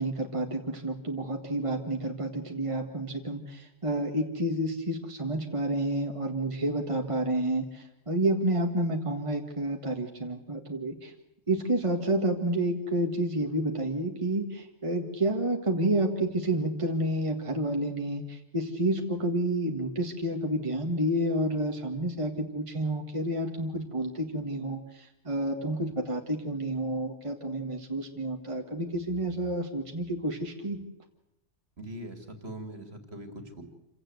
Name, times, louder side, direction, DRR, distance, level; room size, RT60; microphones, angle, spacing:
voice 1, 0.0-11.1 11.5-30.8, right 1 dB, 25° right, 3 dB, 1.9 m, -30 dB
voice 2, 31.8-33.6, right 1 dB, 60° right, 7 dB, 3.0 m, -41 dB
27.5 x 17.0 x 8.0 m, 0.88 s
omnidirectional pair, 1.2 m